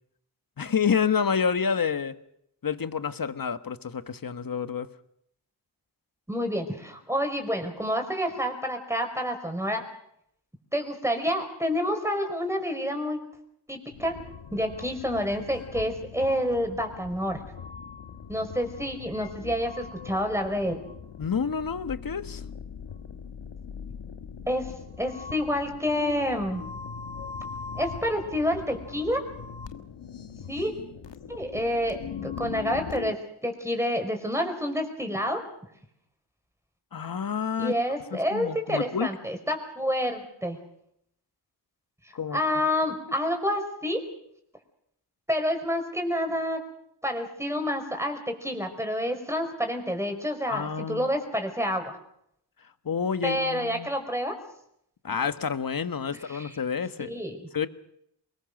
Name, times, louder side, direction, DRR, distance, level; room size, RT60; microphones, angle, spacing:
voice 1, 0.6-2.2 2.6-4.9 21.2-22.4 36.9-37.7 38.1-39.1 42.1-42.4 50.5-51.1 52.8-53.9 55.0-57.1 57.5-57.7, left 6 dB, 55° left, 11 dB, 1.5 m, -28 dB
voice 2, 6.3-9.8 10.7-13.2 13.7-14.2 14.5-17.4 18.3-20.8 24.5-24.7 25.0-26.6 27.7-29.2 30.5-30.7 31.3-33.2 33.4-35.4 37.6-40.6 42.3-44.0 45.3-46.6 47.0-52.0 53.2-54.3 56.3-56.5 57.0-57.4, equal, 5° right, 5 dB, 5.0 m, -28 dB
sound 1, 13.9-33.1, left 6 dB, 90° left, 1.5 m, -41 dB
24.0 x 21.5 x 6.6 m, 0.74 s
cardioid pair, 70°, 41 cm